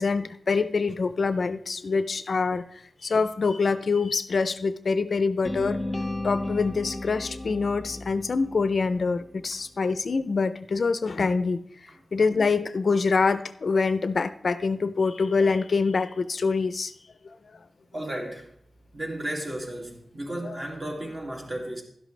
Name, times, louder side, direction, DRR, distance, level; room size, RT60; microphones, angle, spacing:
voice 1, 0.0-5.8 6.2-11.6 12.1-16.9 17.2-17.6 20.4-20.6, left 4 dB, 60° left, 0.5 m, -25 dB
sound 1, 5.4-9.5, left 1 dB, 10° left, 1.2 m, -34 dB
voice 2, 17.9-18.5 18.9-21.8, right 1 dB, 35° right, 2.4 m, -34 dB
12.0 x 11.0 x 3.3 m
wide cardioid pair, 110°, 0 cm